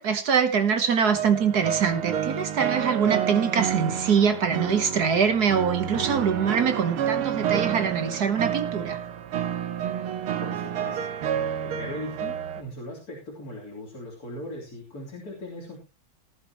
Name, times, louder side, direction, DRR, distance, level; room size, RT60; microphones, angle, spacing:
voice 1, 0.0-9.0, right 6 dB, 55° right, 10 dB, 1.5 m, -24 dB
sound 1, 1.1-12.6, right 9 dB, 85° right, 2.0 m, -29 dB
voice 2, 10.4-11.0 11.3-15.8, left 1 dB, 45° left, -4 dB, 3.7 m, -39 dB
18.5 x 10.5 x 3.0 m, 0.28 s
omnidirectional pair, 2.3 m